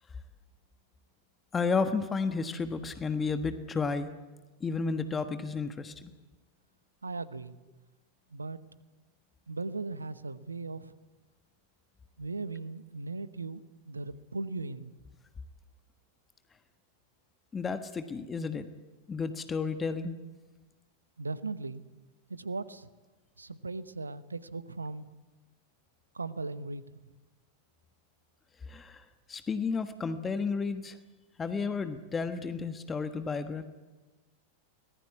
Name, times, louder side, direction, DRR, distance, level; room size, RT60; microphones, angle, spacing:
voice 1, 1.5-4.1 4.6-6.1 17.5-18.7 19.1-20.2 28.7-31.0 31.4-33.6, left 4 dB, 15° left, 9 dB, 1.4 m, -32 dB
voice 2, 7.0-7.5 8.3-8.6 9.5-10.9 12.2-14.9 21.2-21.8 22.3-22.9 23.4-25.1 26.1-26.8, right 3 dB, 80° right, 15 dB, 1.0 m, -38 dB
24.0 x 19.5 x 8.3 m, 1.2 s
figure-of-eight pair, 90°, 0 cm